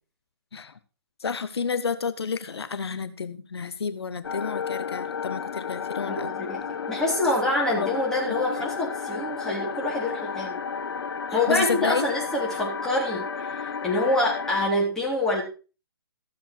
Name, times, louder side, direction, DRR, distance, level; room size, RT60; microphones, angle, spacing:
voice 1, 1.2-6.3 7.7-7.9 8.5-8.7 11.3-12.0, left 5 dB, 85° left, 13 dB, 1.1 m, -30 dB
sound 1, 4.2-14.7, left 6 dB, 70° left, 1.8 m, -32 dB
voice 2, 6.1-10.6 11.3-15.4, left 1 dB, 5° left, -5 dB, 3.8 m, -26 dB
14.5 x 7.3 x 4.6 m, 0.35 s
hypercardioid pair, 160°, 13 cm